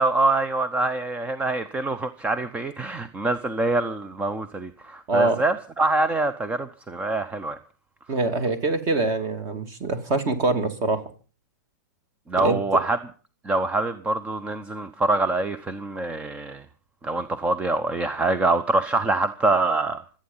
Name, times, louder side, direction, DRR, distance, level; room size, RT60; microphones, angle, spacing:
voice 1, 0.0-7.6 12.3-13.0 13.4-16.6 17.0-20.0, right 2 dB, 10° right, 0.8 m, -25 dB
voice 2, 5.1-5.4 8.1-11.0 12.4-12.6, right 3 dB, 30° right, 2.7 m, -24 dB
25.5 x 8.9 x 5.6 m
hypercardioid pair, 125°, 10 cm